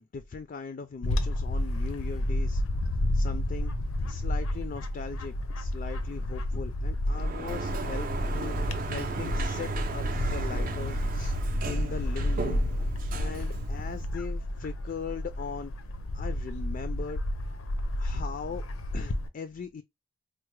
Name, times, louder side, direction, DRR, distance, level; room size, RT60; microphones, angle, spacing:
voice 1, 0.0-2.6 3.1-3.7 4.1-11.4 11.6-12.7 13.2-15.7 16.1-17.2 18.0-18.6 18.9-19.8, left 5 dB, 40° left, 0.3 m, -39 dB
Bird / Wind, 1.0-19.3, left 1 dB, 90° left, 0.5 m, -31 dB
Sliding door, 7.1-14.2, right 3 dB, 40° right, 0.5 m, -35 dB
4.5 x 2.1 x 3.1 m
head